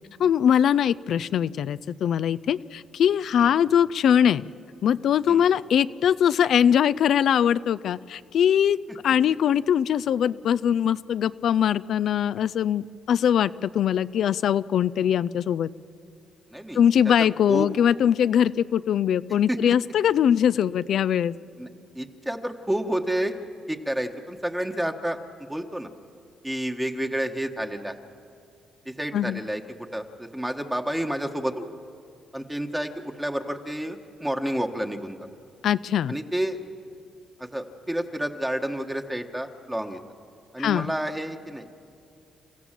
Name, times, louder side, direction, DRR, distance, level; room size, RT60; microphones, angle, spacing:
voice 1, 0.2-4.4 4.8-15.7 16.7-21.3 29.1-29.4 35.6-36.1 40.6-40.9, left 9 dB, 70° left, 15 dB, 0.4 m, -22 dB
voice 2, 16.5-17.7 19.5-19.7 21.6-21.7 21.9-23.4 23.7-25.2 25.5-25.9 26.4-27.9 28.8-31.7 32.3-35.2 36.1-36.6 37.4-40.0 40.5-41.8, right 1 dB, 10° right, 4 dB, 1.4 m, -30 dB
29.5 x 15.5 x 7.5 m, 2.5 s
cardioid pair, 90°, 0 cm